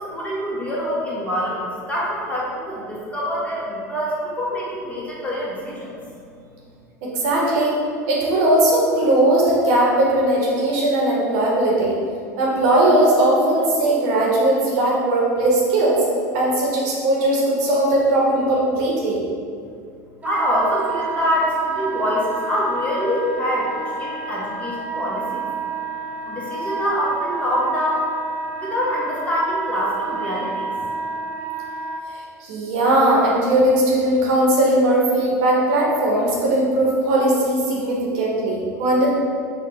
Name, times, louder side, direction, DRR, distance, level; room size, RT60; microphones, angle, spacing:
voice 1, 0.0-5.9 20.2-25.5 26.3-28.1 28.6-30.7, equal, 15° left, -6 dB, 1.1 m, -25 dB
voice 2, 7.0-7.8 8.1-12.0 12.4-16.1 16.3-19.2 32.1-39.1, right 1 dB, 65° right, -4 dB, 0.9 m, -19 dB
Wind instrument woodwind instrument, 20.2-32.0, right 4 dB, 15° right, 0.4 m, -29 dB
4.5 x 2.4 x 3.0 m, 2.3 s
hypercardioid pair, 85°, 9 cm